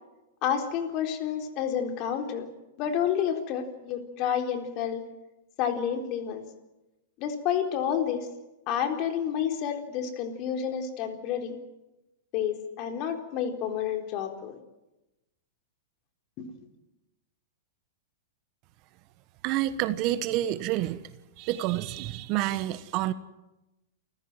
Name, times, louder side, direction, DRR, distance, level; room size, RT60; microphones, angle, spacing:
voice 1, 0.4-2.5 2.8-5.0 5.6-6.4 7.2-8.3 8.7-11.6 12.3-14.6 16.4-16.5, left 8 dB, 45° left, 5 dB, 4.1 m, -29 dB
voice 2, 19.4-21.0 21.4-23.1, right 14 dB, 45° right, 14 dB, 1.3 m, -28 dB
28.5 x 15.5 x 9.1 m, 1.0 s
hypercardioid pair, 115°, 0 cm